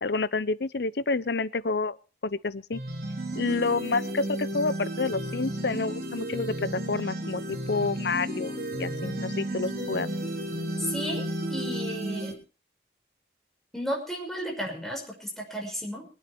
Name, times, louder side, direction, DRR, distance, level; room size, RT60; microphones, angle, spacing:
voice 1, 0.0-2.0 2.2-2.8 3.3-10.1, left 3 dB, 70° left, 0.8 m, -29 dB
sound 1, 2.7-12.3, right 1 dB, 55° right, 3.3 m, -33 dB
voice 2, 10.8-11.2 11.5-12.4 13.7-16.1, equal, ahead, 6.0 m, -33 dB
24.0 x 9.5 x 4.5 m
head